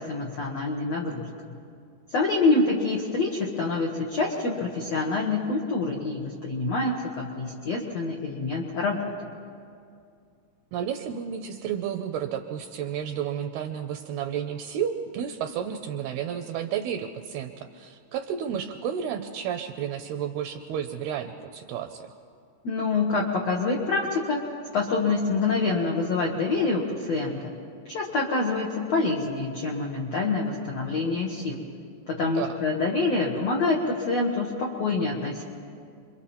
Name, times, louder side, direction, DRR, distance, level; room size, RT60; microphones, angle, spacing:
voice 1, 0.1-1.3 2.1-9.0 22.6-24.4 24.7-27.4 27.8-31.6 32.1-35.4, left 3 dB, 70° left, -1 dB, 1.5 m, -26 dB
voice 2, 10.7-22.1 32.2-32.6, right 8 dB, 80° right, 6 dB, 2.3 m, -32 dB
28.0 x 23.0 x 4.3 m, 2.3 s
omnidirectional pair, 5.1 m